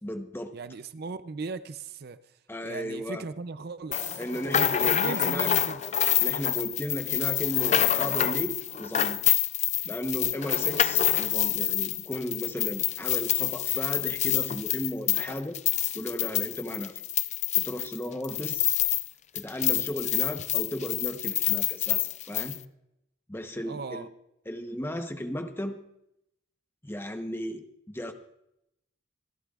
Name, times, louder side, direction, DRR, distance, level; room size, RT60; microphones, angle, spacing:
voice 1, 0.0-0.5 2.5-3.2 4.2-5.5 6.2-9.2 9.8-15.6 15.9-17.0 17.5-18.7 19.3-22.6 23.3-24.1 24.5-25.8 26.8-28.1, equal, 10° left, 6 dB, 0.9 m, -35 dB
voice 2, 0.5-2.2 2.6-4.2 4.9-5.8 23.7-24.1, right 4 dB, 50° right, 13 dB, 0.5 m, -37 dB
sound 1, 3.9-19.1 19.4-22.6, left 12 dB, 35° left, 0.4 m, -27 dB
26.5 x 12.5 x 2.4 m, 0.82 s
head